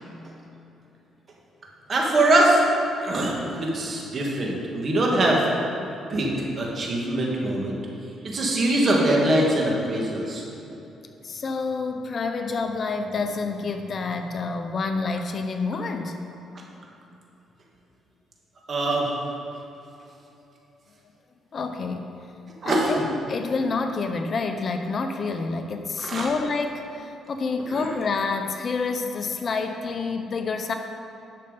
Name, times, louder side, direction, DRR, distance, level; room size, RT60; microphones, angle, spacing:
voice 1, 1.9-2.6 3.0-5.5 6.1-7.8 8.2-10.4 18.7-19.1 22.6-23.1 26.0-26.3 27.7-27.9, right 1 dB, 45° right, -2 dB, 2.3 m, -22 dB
voice 2, 11.2-16.2 21.5-22.1 22.6-30.7, left 4 dB, 45° left, 6 dB, 0.8 m, -28 dB
11.0 x 6.6 x 5.4 m, 2.9 s
cardioid pair, 90°, 0 cm